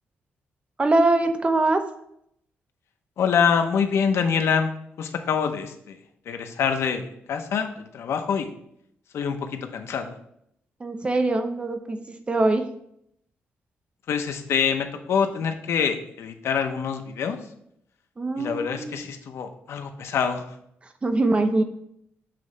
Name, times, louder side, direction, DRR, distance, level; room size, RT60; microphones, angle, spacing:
voice 1, 0.8-1.8 10.8-12.7 18.2-19.0 21.0-21.6, right 2 dB, 25° right, 7 dB, 0.8 m, -23 dB
voice 2, 3.2-4.7 5.0-6.0 6.3-8.5 9.1-10.2 14.1-17.4 18.4-20.4, left 6 dB, 70° left, 6 dB, 0.8 m, -25 dB
7.6 x 3.2 x 5.0 m, 0.73 s
cardioid pair, 105°, 5 cm